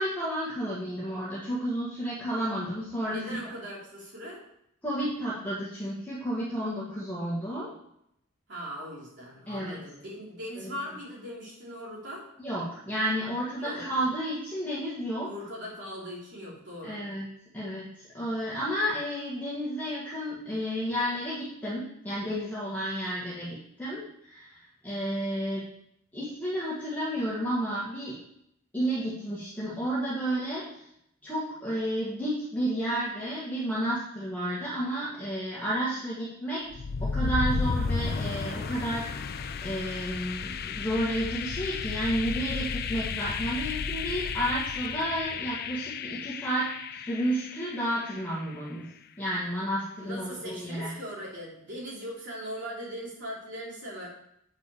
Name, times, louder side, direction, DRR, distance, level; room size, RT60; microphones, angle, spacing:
voice 1, 0.0-3.4 4.8-7.7 9.5-9.8 10.6-10.8 12.4-15.3 16.8-17.3 17.5-24.6 24.8-25.7 26.1-28.2 28.7-30.7 31.2-36.6 37.0-39.3 39.6-48.9 49.2-50.9, right 1 dB, 10° left, -8 dB, 1.7 m, -31 dB
voice 2, 3.1-4.4 8.5-12.3 13.6-13.8 15.2-17.0 50.0-54.1, equal, 60° right, -4 dB, 3.3 m, -40 dB
sound 1, 36.7-48.6, left 5 dB, 50° left, 0.4 m, -33 dB
8.5 x 6.0 x 4.9 m, 0.75 s
head